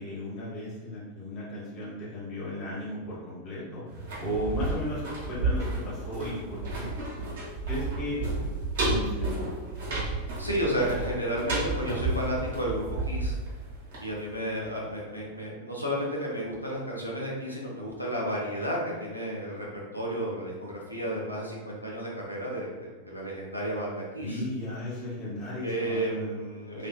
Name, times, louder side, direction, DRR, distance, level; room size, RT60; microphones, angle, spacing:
voice 1, 0.0-3.8 4.2-6.9 7.7-8.2 8.8-9.5 24.2-26.4 26.7-26.9, left 1 dB, 40° left, -7 dB, 1.0 m, -35 dB
sound 1, 3.9-14.7 15.0-15.1, right 2 dB, 60° right, 0.9 m, -32 dB
voice 2, 10.4-13.4 14.0-24.4 25.6-26.9, equal, 90° left, -3 dB, 0.6 m, -32 dB
3.4 x 2.4 x 2.2 m, 1.4 s
figure-of-eight pair, 90°, 0 cm